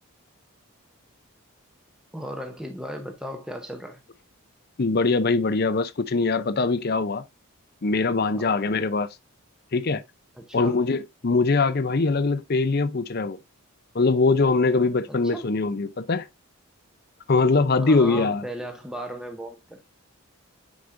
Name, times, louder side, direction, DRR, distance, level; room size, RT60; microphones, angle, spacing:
voice 1, 2.1-4.0 8.3-8.5 10.4-10.8 15.1-15.5 17.8-19.8, equal, 5° right, 0.8 m, -36 dB
voice 2, 4.8-7.2 7.8-9.1 9.7-10.0 10.5-13.4 13.9-16.3 17.3-18.4, left 3 dB, 45° left, 0.6 m, -22 dB
9.5 x 5.0 x 2.6 m
head